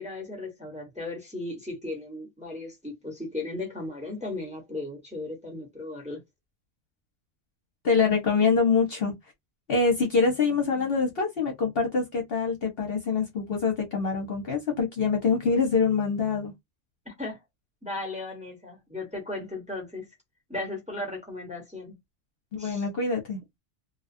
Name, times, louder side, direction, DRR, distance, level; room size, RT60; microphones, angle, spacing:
voice 1, 0.0-6.2 17.0-17.4 17.8-20.1 20.5-22.0 22.6-22.9, left 2 dB, 5° right, 1.0 m, -36 dB
voice 2, 7.8-9.1 9.7-16.5 22.5-23.4, left 5 dB, 55° left, 0.9 m, -25 dB
2.6 x 2.3 x 2.5 m
omnidirectional pair, 1.3 m